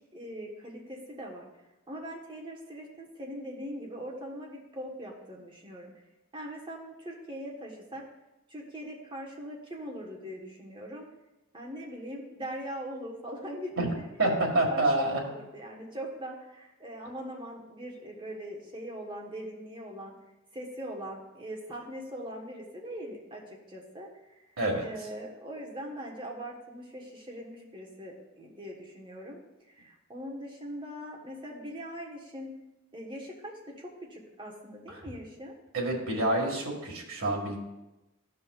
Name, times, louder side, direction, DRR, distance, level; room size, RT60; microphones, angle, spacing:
voice 1, 0.1-1.5 1.9-5.9 6.3-8.0 8.5-11.1 11.5-14.1 14.5-20.2 20.5-24.1 24.8-29.4 29.7-32.5 32.9-35.5, equal, 25° right, -1 dB, 1.2 m, -41 dB
voice 2, 14.2-15.2 24.6-24.8 34.9-35.0 35.7-37.6, right 1 dB, 80° right, 0 dB, 1.8 m, -27 dB
14.0 x 5.4 x 2.4 m, 0.99 s
head